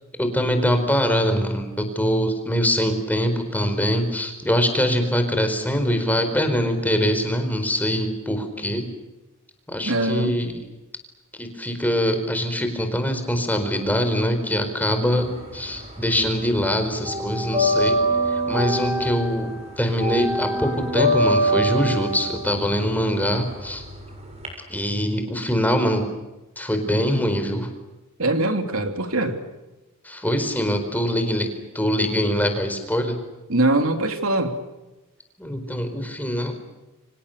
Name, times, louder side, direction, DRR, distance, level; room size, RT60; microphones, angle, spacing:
voice 1, 0.2-8.9 9.7-10.6 11.3-18.0 18.2-23.8 24.7-26.1 26.6-27.7 30.0-31.5 31.7-33.2 35.4-36.5, equal, 10° left, 6 dB, 4.5 m, -23 dB
voice 2, 9.8-10.4 28.2-29.4 33.5-34.6, right 2 dB, 80° right, 6 dB, 3.1 m, -22 dB
sound 1, 15.2-16.3 16.6-24.5, equal, 30° right, 7.1 m, -24 dB
30.0 x 25.5 x 6.8 m, 1.1 s
head